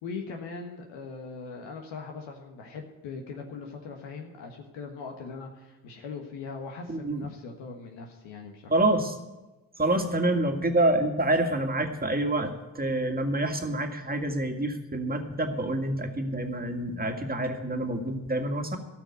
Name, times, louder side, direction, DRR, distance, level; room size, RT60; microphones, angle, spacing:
voice 1, 0.0-8.7, left 4 dB, 75° left, 2 dB, 1.5 m, -40 dB
voice 2, 6.9-7.3 8.7-9.1 9.8-18.8, right 1 dB, 20° right, 5 dB, 2.0 m, -27 dB
14.0 x 5.9 x 9.5 m, 1.1 s
hypercardioid pair, 50°, 45 cm